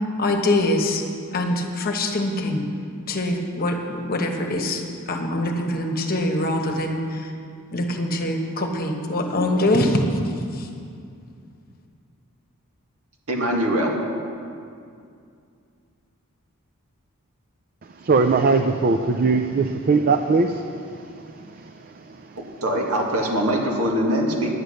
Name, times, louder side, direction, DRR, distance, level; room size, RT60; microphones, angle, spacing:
voice 1, 0.2-1.0 1.3-2.6 3.1-4.8 5.1-7.3 7.7-10.0 10.5-10.7, left 1 dB, 45° left, 3 dB, 1.1 m, -23 dB
voice 2, 13.3-13.9 22.4-24.5, equal, 85° right, 0 dB, 1.8 m, -23 dB
voice 3, 18.0-21.1 21.6-21.7, right 4 dB, 40° right, 7 dB, 0.4 m, -20 dB
10.0 x 9.4 x 6.4 m, 2.3 s
head